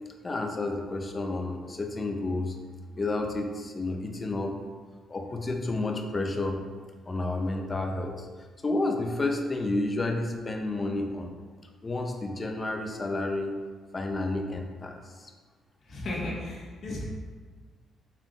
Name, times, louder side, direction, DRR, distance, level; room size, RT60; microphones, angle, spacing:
voice 1, 0.2-2.6 3.0-4.6 5.1-6.6 7.1-8.3 8.6-11.3 11.8-13.6 13.9-15.3 16.9-17.0, left 2 dB, 30° left, 3 dB, 0.6 m, -30 dB
voice 2, 15.9-17.0, left 1 dB, 60° left, -5 dB, 1.4 m, -34 dB
5.6 x 3.5 x 2.5 m, 1.5 s
cardioid pair, 90°, 0 cm